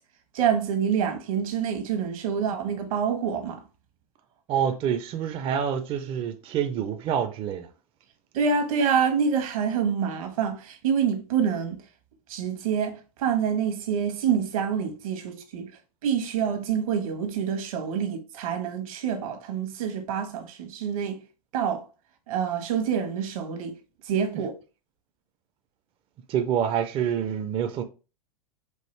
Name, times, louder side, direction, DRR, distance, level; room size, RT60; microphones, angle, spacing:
voice 1, 0.3-3.6 8.3-11.8 12.3-15.7 16.0-21.2 21.5-21.8 22.3-23.7 24.1-24.5, right 7 dB, 65° right, 1.1 m, -26 dB
voice 2, 4.5-7.7 24.3-24.4 26.3-27.8, right 8 dB, 30° right, 0.4 m, -27 dB
4.6 x 2.5 x 3.1 m
hypercardioid pair, 115°, 19 cm